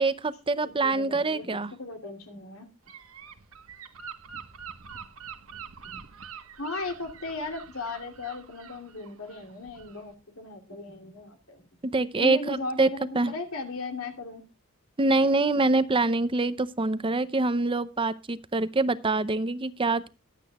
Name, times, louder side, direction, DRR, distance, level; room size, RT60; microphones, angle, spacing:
voice 1, 0.0-1.7 11.8-12.9 13.1-13.3 15.0-20.1, right 3 dB, 25° right, 0.6 m, -25 dB
voice 2, 0.6-2.7 5.8-6.0 6.6-11.6 12.2-14.4, left 3 dB, 90° left, 3.0 m, -37 dB
Gull seagull / Wind, 2.9-10.1, right 7 dB, 75° right, 1.3 m, -45 dB
22.5 x 8.4 x 2.3 m
head